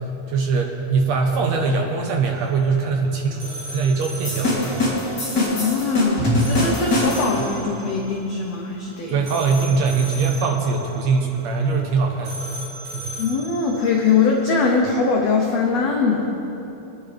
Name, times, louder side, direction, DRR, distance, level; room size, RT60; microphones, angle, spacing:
voice 1, 0.3-5.0 9.1-12.4 12.9-13.2, right 4 dB, 70° right, 1 dB, 1.8 m, -22 dB
sound 1, 2.3-14.8, right 1 dB, 50° right, 1.8 m, -38 dB
sound 2, 4.2-7.5, left 1 dB, 30° left, 2.7 m, -22 dB
voice 2, 5.3-9.2 13.2-16.3, left 5 dB, 75° left, 0 dB, 1.5 m, -22 dB
23.0 x 9.8 x 3.4 m, 3.0 s
omnidirectional pair, 4.1 m